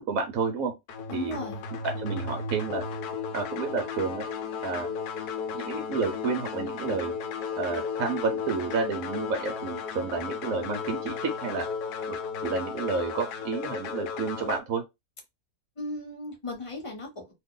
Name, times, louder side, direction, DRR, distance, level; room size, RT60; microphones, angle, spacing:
voice 1, 0.1-0.7 1.1-1.4 1.7-2.8 3.3-4.3 4.6-4.9 5.5-7.2 7.6-11.6 12.1-12.2 12.4-14.8, right 5 dB, 65° right, 0.9 m, -30 dB
sound 1, 0.9-14.6, left 5 dB, 80° left, 1.1 m, -34 dB
voice 2, 1.1-1.6 15.8-17.3, left 2 dB, 25° left, 0.7 m, -36 dB
2.7 x 2.4 x 3.6 m
omnidirectional pair, 1.7 m